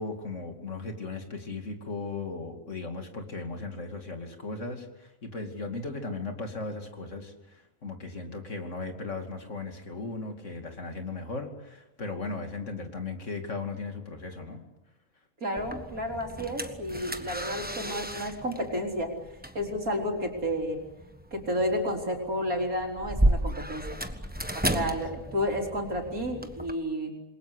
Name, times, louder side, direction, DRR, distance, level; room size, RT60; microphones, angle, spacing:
voice 1, 0.0-14.6 24.8-25.0, left 3 dB, 60° left, 4 dB, 3.0 m, -37 dB
voice 2, 15.4-19.2 19.5-20.8 21.3-24.0 24.5-27.2, equal, 85° right, 2 dB, 4.5 m, -31 dB
sound 1, 15.6-26.7, right 1 dB, 5° right, 1.3 m, -33 dB
28.0 x 21.5 x 8.2 m, 1.0 s
omnidirectional pair, 1.5 m